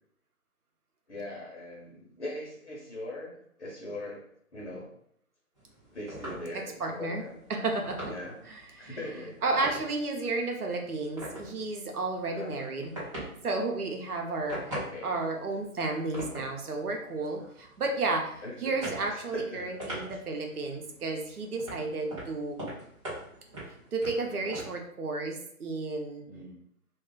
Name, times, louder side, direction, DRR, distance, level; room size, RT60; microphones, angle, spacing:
voice 1, 1.1-4.2 4.5-4.9 5.9-7.4 8.0-8.4 8.8-9.4 12.3-12.7 14.7-15.1 18.4-18.8 19.0-20.0 24.3-24.6 26.3-26.6, left 2 dB, 50° left, -4 dB, 0.9 m, -41 dB
sound 1, 5.5-24.7, right 1 dB, 20° right, 0.9 m, -44 dB
voice 2, 6.5-7.2 7.5-8.1 8.5-9.0 9.4-14.7 15.0-22.6 23.9-26.3, right 3 dB, 90° right, 2 dB, 0.8 m, -32 dB
2.4 x 2.3 x 3.7 m, 0.68 s
figure-of-eight pair, 160°, 44 cm